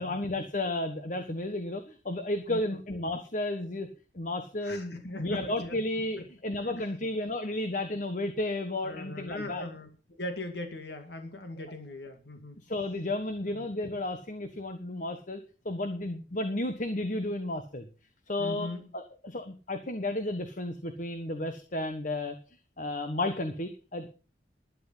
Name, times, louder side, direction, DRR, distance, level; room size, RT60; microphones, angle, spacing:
voice 1, 0.0-3.9 4.1-9.6 12.6-17.9 18.3-22.3 22.8-24.1, left 1 dB, 45° left, 7 dB, 1.4 m, -33 dB
voice 2, 4.6-5.8 6.7-6.8 8.8-9.9 10.2-12.6 13.5-13.7 18.4-18.9, left 1 dB, 70° left, 6 dB, 2.1 m, -39 dB
12.0 x 11.0 x 5.7 m, 0.36 s
head